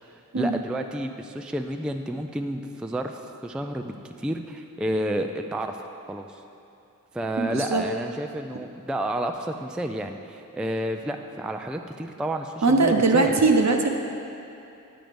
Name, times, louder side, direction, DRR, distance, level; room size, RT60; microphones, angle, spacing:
voice 1, 0.1-6.4 7.1-13.3, right 1 dB, 5° right, 5 dB, 0.3 m, -30 dB
voice 2, 7.4-7.8 12.6-13.9, right 3 dB, 55° right, 3 dB, 0.9 m, -20 dB
8.6 x 7.7 x 5.1 m, 2.7 s
wide cardioid pair, 80°, 33 cm